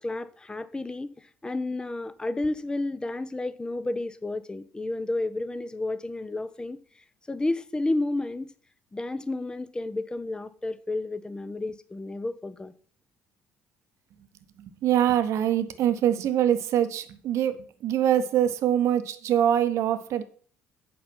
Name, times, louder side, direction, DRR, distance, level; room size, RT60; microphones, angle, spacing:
voice 1, 0.0-6.8 7.3-8.5 8.9-12.7, left 2 dB, 15° left, 0.7 m, -31 dB
voice 2, 14.6-17.6 17.8-20.2, right 10 dB, 55° right, 1.0 m, -24 dB
8.6 x 5.5 x 6.0 m
figure-of-eight pair, 55°, 6 cm